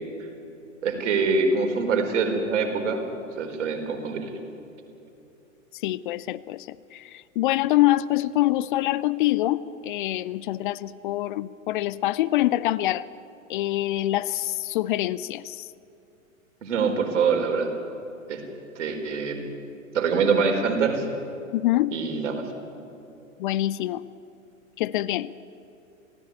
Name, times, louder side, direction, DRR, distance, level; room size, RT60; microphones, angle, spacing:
voice 1, 0.8-3.0 3.4-4.3 16.6-17.7 18.3-18.4 18.8-19.4 19.9-21.0 21.9-22.4, right 5 dB, 60° right, 5 dB, 4.7 m, -24 dB
voice 2, 5.7-13.1 13.5-15.7 21.5-21.9 23.4-24.0 24.8-25.3, left 15 dB, 40° left, 18 dB, 0.7 m, -25 dB
28.5 x 18.0 x 9.6 m, 2.9 s
figure-of-eight pair, 100°, 41 cm